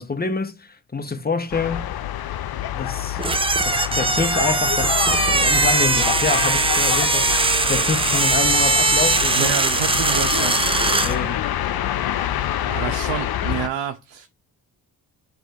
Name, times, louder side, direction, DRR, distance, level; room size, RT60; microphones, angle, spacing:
voice 1, 0.0-1.9 2.7-3.2 3.6-7.3 7.7-9.6 10.8-11.5, left 4 dB, 20° left, 0.9 m, -27 dB
sound 1, 1.5-13.7, left 11 dB, 50° left, 0.6 m, -26 dB
sound 2, 3.2-11.2, right 3 dB, 15° right, 0.4 m, -20 dB
voice 2, 9.3-10.5 12.7-14.3, right 10 dB, 70° right, 0.6 m, -28 dB
4.8 x 2.5 x 4.2 m
supercardioid pair, 40°, 47 cm